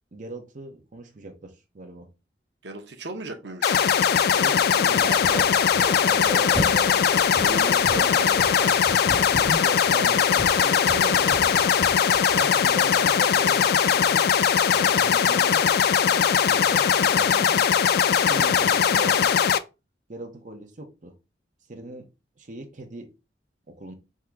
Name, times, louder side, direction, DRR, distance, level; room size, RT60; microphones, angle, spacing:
voice 1, 0.1-2.1 4.3-7.0 7.9-8.2 9.6-11.8 12.3-14.3 14.7-15.8 16.1-17.7 18.1-19.4 20.1-21.1 21.7-22.1 22.4-23.1 23.7-23.9, right 1 dB, 50° right, 0.8 m, -38 dB
voice 2, 2.6-3.8 7.3-8.5 18.1-18.4, right 2 dB, 80° right, 0.8 m, -36 dB
sound 1, 3.6-19.6, left 8 dB, 60° left, 0.4 m, -20 dB
sound 2, 4.9-12.8, equal, 15° left, 1.6 m, -35 dB
3.7 x 2.8 x 4.5 m
head